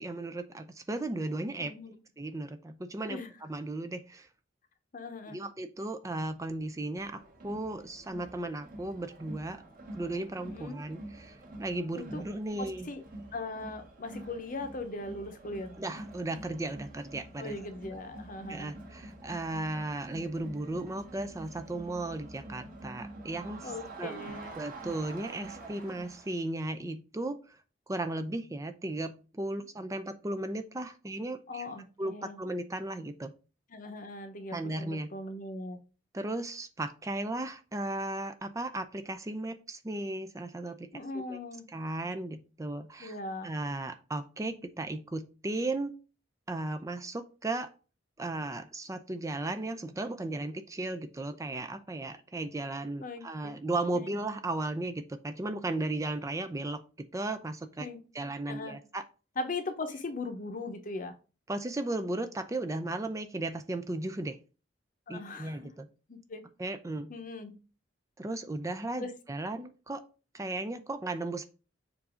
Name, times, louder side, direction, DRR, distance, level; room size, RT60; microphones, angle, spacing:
voice 1, 0.0-1.7 2.2-4.3 5.3-9.6 9.9-12.9 15.8-17.5 18.5-23.7 24.0-27.6 27.9-31.7 32.0-33.3 34.5-35.1 36.1-40.9 41.1-41.4 41.7-43.2 43.4-45.9 46.5-47.7 48.2-56.8 57.1-57.9 58.1-59.0 61.5-64.4 65.1-65.9 66.6-67.1 68.2-70.0 70.3-71.4, right 2 dB, 15° right, 8 dB, 0.5 m, -35 dB
voice 2, 1.6-1.9 3.1-3.3 4.9-5.4 10.4-10.8 11.9-12.2 12.6-13.0 13.3-15.8 17.4-18.7 23.6-24.6 29.6-29.7 31.5-32.4 33.7-35.8 40.9-41.7 43.0-43.5 53.0-53.6 53.9-54.2 57.8-58.8 59.4-61.1 65.1-65.7 66.1-66.4 67.1-67.6 69.0-69.1, left 2 dB, 45° left, 8 dB, 0.9 m, -39 dB
Crowd, 7.0-26.4, right 1 dB, 50° right, 1.7 m, -47 dB
7.2 x 2.7 x 4.9 m, 0.33 s
head